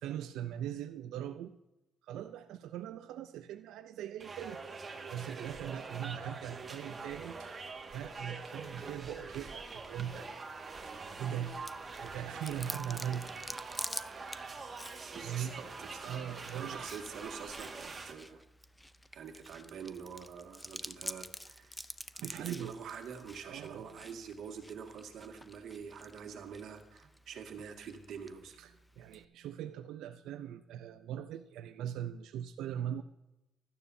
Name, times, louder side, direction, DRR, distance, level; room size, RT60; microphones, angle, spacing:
voice 1, 0.0-1.6 2.0-4.6 5.1-7.5 7.9-10.3 10.9-11.6 12.0-13.3 15.1-15.6 16.0-16.9 22.1-22.7 23.4-23.9 28.6-28.7 29.0-33.0, right 10 dB, 85° right, 8 dB, 0.5 m, -40 dB
sound 1, 4.2-18.1, right 4 dB, 35° right, 1.8 m, -44 dB
Chewing mastication, 11.7-29.3, left 1 dB, 10° left, 0.5 m, -48 dB
voice 2, 15.1-18.4 19.1-21.8 22.2-28.6, right 6 dB, 70° right, 3 dB, 2.0 m, -46 dB
16.0 x 12.0 x 2.7 m, 0.94 s
cardioid pair, 90°, 0 cm